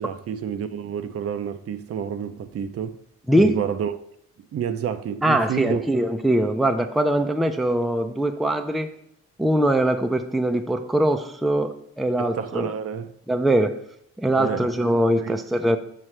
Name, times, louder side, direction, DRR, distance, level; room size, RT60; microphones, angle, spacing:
voice 1, 0.0-2.9 3.3-3.9 4.5-5.8 12.2-13.1 14.4-14.7 15.2-15.4, right 8 dB, 50° right, 0.6 m, -29 dB
voice 2, 3.3-3.6 5.2-8.9 9.4-12.7 13.3-13.8 14.2-15.8, right 1 dB, ahead, 0.4 m, -22 dB
7.4 x 5.5 x 3.2 m
cardioid pair, 90°, 30 cm